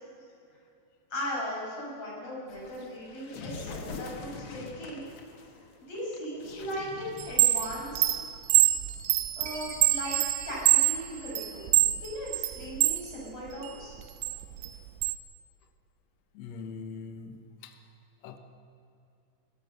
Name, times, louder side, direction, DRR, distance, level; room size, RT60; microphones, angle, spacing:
voice 1, 1.1-5.1 5.8-8.2 9.4-11.7 12.0-14.0, equal, 35° left, -4 dB, 7.2 m, -38 dB
sound 1, 2.5-8.4, left 4 dB, 65° left, 1.4 m, -44 dB
Chime, 7.2-13.0 13.5-15.2, right 16 dB, 80° right, 2.8 m, -25 dB
Chime 2, 9.5-12.0, right 4 dB, 50° right, 1.6 m, -45 dB
voice 2, 16.3-17.8 18.2-18.4, left 5 dB, 90° left, 7 dB, 1.5 m, -42 dB
21.5 x 18.0 x 6.7 m, 2.5 s
omnidirectional pair, 5.0 m